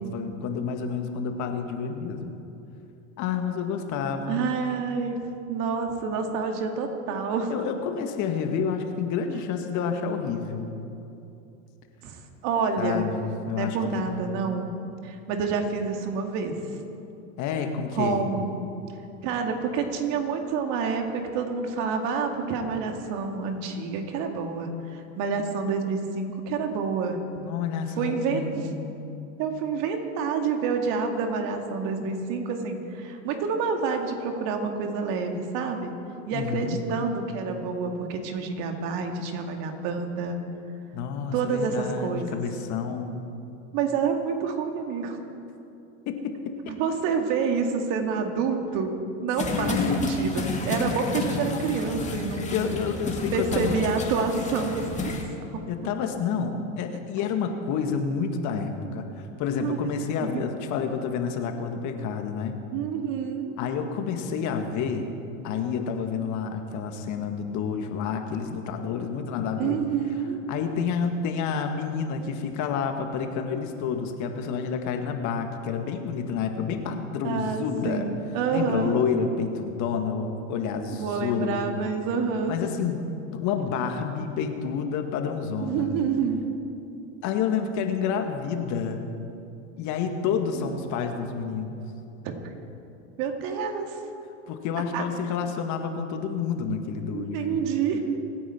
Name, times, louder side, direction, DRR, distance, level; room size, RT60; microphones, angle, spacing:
voice 1, 0.0-2.4 3.2-4.5 7.5-10.7 12.8-14.2 17.4-18.2 27.3-29.1 36.3-36.8 40.9-43.1 46.0-46.7 49.5-50.3 52.5-53.8 55.7-62.5 63.6-65.1 65.4-69.8 70.5-78.1 78.5-81.7 82.5-83.0 83.3-85.9 87.2-89.1 89.8-91.8 94.5-97.6, left 6 dB, 45° left, 5 dB, 1.7 m, -29 dB
voice 2, 4.3-5.2 5.5-7.7 9.3-9.4 12.0-13.0 13.5-14.7 15.0-16.6 18.0-18.6 19.2-27.2 28.0-28.7 29.4-35.9 36.3-40.4 41.3-42.4 43.7-45.2 46.7-52.7 53.3-55.1 55.5-55.6 58.8-59.0 59.6-59.8 60.2-60.4 62.7-63.5 69.6-70.4 77.2-79.0 80.8-82.6 85.6-86.4 90.5-90.7 92.2-92.5 93.2-94.0 94.9-95.0 97.1-98.0, right 5 dB, 55° right, 4 dB, 2.2 m, -28 dB
sound 1, 49.4-55.2, left 3 dB, 20° left, 2.2 m, -30 dB
24.5 x 9.4 x 4.4 m, 2.7 s
hypercardioid pair, 100°, 39 cm